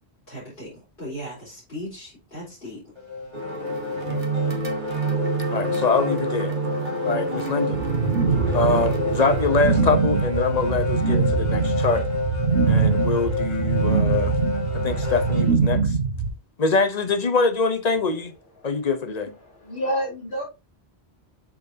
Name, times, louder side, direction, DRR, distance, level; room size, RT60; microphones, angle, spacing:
voice 1, 0.3-0.7 1.0-2.8, equal, 55° left, 4.8 m, -37 dB
sound 1, 3.0-15.6, left 5 dB, 25° right, 2.5 m, -30 dB
sound 2, 3.3-9.6, right 4 dB, 50° right, 1.7 m, -28 dB
voice 2, 5.5-6.5 7.1-7.8 8.5-12.1 12.7-14.3 14.7-15.9 16.6-18.3 18.6-19.3, left 4 dB, 40° left, 0.9 m, -24 dB
sound 3, 7.7-16.3, right 5 dB, 85° right, 1.5 m, -23 dB
voice 3, 18.6-19.1 19.4-20.4, equal, 75° left, 4.1 m, -30 dB
7.9 x 6.3 x 2.8 m
omnidirectional pair, 1.1 m